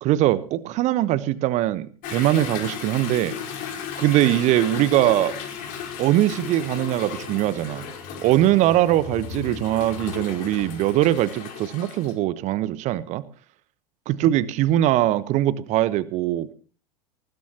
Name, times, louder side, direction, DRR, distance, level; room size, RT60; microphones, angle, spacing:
voice 1, 0.0-3.4 4.0-5.4 6.0-7.9 8.2-13.2 14.1-16.5, right 14 dB, 40° right, 16 dB, 1.1 m, -21 dB
Toilet flush / Drip / Trickle dribble, 2.0-12.1, left 7 dB, 45° left, 4.6 m, -35 dB
20.0 x 19.5 x 3.0 m, 0.40 s
figure-of-eight pair, 80°, 19 cm